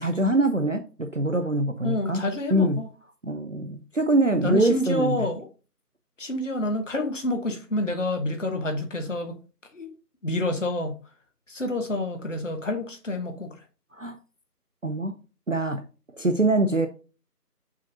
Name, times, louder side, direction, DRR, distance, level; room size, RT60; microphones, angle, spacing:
voice 1, 0.0-2.2 2.5-2.8 3.2-5.3 13.9-14.2 14.8-15.1 15.5-15.8 16.1-16.9, right 1 dB, 50° right, 0.7 m, -24 dB
voice 2, 1.8-2.9 4.4-5.5 6.2-9.4 9.7-9.9 10.2-10.9 11.5-13.6, left 1 dB, 50° left, 1.1 m, -28 dB
6.2 x 5.8 x 2.7 m
figure-of-eight pair, 170°, 49 cm